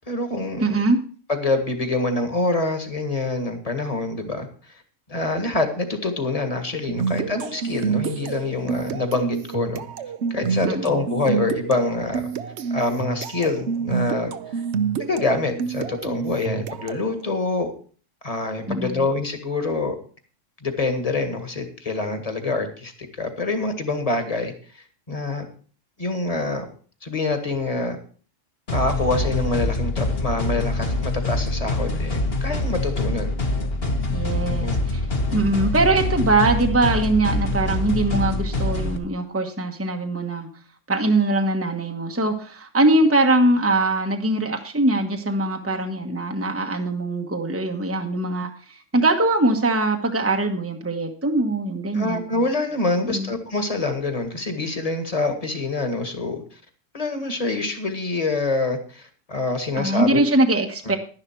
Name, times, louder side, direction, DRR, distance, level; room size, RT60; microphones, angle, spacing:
voice 1, 0.1-0.8 1.3-4.8 5.1-9.8 10.3-12.3 12.7-14.6 15.0-17.7 18.2-20.0 20.6-25.5 26.0-26.7 27.0-28.0 28.7-33.3 34.5-34.8 51.9-56.6 56.9-60.2, left 2 dB, 30° left, 6 dB, 1.9 m, -26 dB
voice 2, 0.6-1.0 10.7-11.0 18.7-19.0 34.1-35.0 35.3-40.5 40.9-52.2 53.1-53.3 59.7-61.0, right 2 dB, 10° right, 3 dB, 1.1 m, -22 dB
sound 1, 6.9-17.1, right 6 dB, 65° right, 1.0 m, -28 dB
sound 2, 28.7-39.0, left 2 dB, 50° left, 1.9 m, -25 dB
11.5 x 10.5 x 4.6 m, 0.41 s
omnidirectional pair, 1.3 m